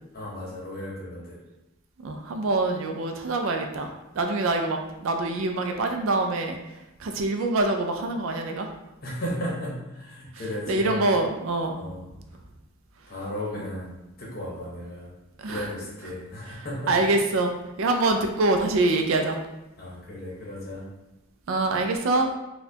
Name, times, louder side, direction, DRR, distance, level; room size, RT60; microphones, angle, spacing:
voice 1, 0.1-1.4 9.0-11.1 11.8-12.1 13.1-15.1 15.5-17.0 19.8-20.9, left 1 dB, 45° left, -4 dB, 0.8 m, -35 dB
voice 2, 2.0-6.6 7.0-8.7 10.7-11.8 15.4-15.7 16.9-17.5 17.8-19.4 21.5-22.3, right 2 dB, 75° right, 4 dB, 0.4 m, -25 dB
4.2 x 2.2 x 2.7 m, 0.97 s
head